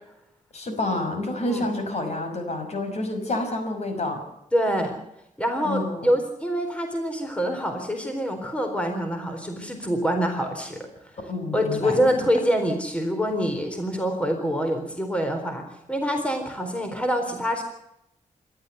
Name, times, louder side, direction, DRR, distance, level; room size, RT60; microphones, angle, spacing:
voice 1, 0.5-4.2 5.6-6.1 11.3-12.0, left 2 dB, 55° left, 6 dB, 5.5 m, -28 dB
voice 2, 4.5-5.0 5.4-10.8 11.5-15.6 15.9-17.6, equal, 10° left, 5 dB, 4.0 m, -25 dB
26.5 x 12.5 x 8.0 m, 0.83 s
wide cardioid pair, 120°, 14 cm